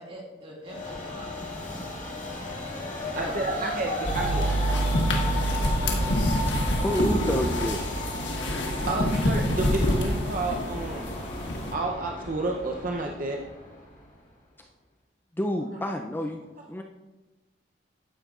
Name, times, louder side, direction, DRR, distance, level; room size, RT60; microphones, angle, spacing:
voice 1, 0.0-1.4 3.1-6.8, right 1 dB, 30° right, -2 dB, 2.1 m, -42 dB
Train, 0.6-14.1, left 1 dB, 45° left, 2.2 m, -35 dB
voice 2, 3.1-4.5 8.0-8.1 8.9-11.1 11.7-13.4, right 2 dB, 45° right, 1 dB, 0.6 m, -30 dB
sound 1, 4.0-11.7, equal, 85° left, 1.4 m, -26 dB
voice 3, 6.8-7.8 15.4-16.4 16.7-16.8, left 1 dB, 10° left, 3 dB, 0.4 m, -28 dB
13.0 x 9.0 x 2.4 m, 1.1 s
head